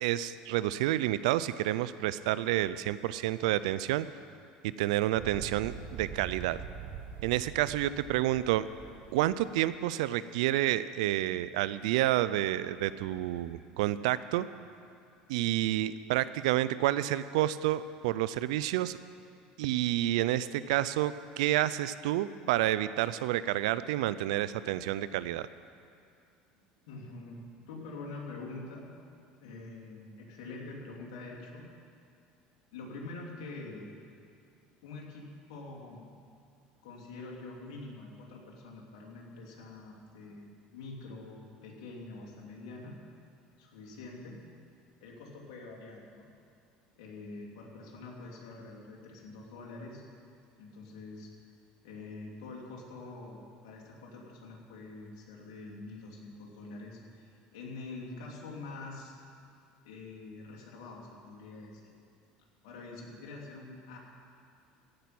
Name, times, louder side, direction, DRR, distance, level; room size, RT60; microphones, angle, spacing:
voice 1, 0.0-4.1 4.6-6.6 7.2-8.7 9.1-14.5 15.3-19.0 19.6-25.5, right 14 dB, 85° right, 15 dB, 0.5 m, -29 dB
sound 1, 5.1-9.6, right 6 dB, 60° right, 1.2 m, -44 dB
voice 2, 26.9-28.9 29.4-31.7 32.7-33.9 34.8-36.1 36.8-43.0 43.6-44.4 45.0-46.3 47.0-50.0 50.6-51.3 51.8-59.1 59.8-61.9 62.6-64.0, left 3 dB, 80° left, -2 dB, 2.9 m, -45 dB
15.5 x 6.0 x 9.3 m, 2.5 s
supercardioid pair, 95°, 4 cm